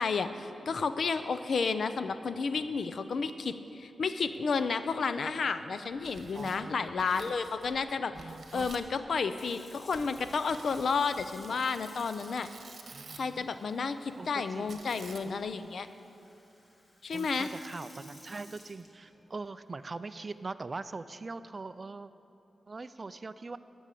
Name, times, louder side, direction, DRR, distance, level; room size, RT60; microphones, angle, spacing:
voice 1, 0.0-8.1 8.5-12.5 13.1-15.9 17.0-17.5, left 5 dB, 65° left, 11 dB, 0.5 m, -31 dB
Tearing, 5.9-7.9 8.1-8.9 9.9-13.4 14.7-15.5, right 4 dB, 60° right, 1.2 m, -51 dB
voice 2, 6.3-7.3 8.1-8.7 12.9-13.5 14.2-14.8 15.2-15.4 17.1-22.1 22.7-23.6, right 3 dB, 35° right, 13 dB, 0.3 m, -42 dB
Sink (filling or washing) / Fill (with liquid), 9.1-19.4 20.0-20.3, left 1 dB, 40° left, 2.2 m, -57 dB
13.0 x 6.3 x 8.2 m, 2.9 s
wide cardioid pair, 115°, 0 cm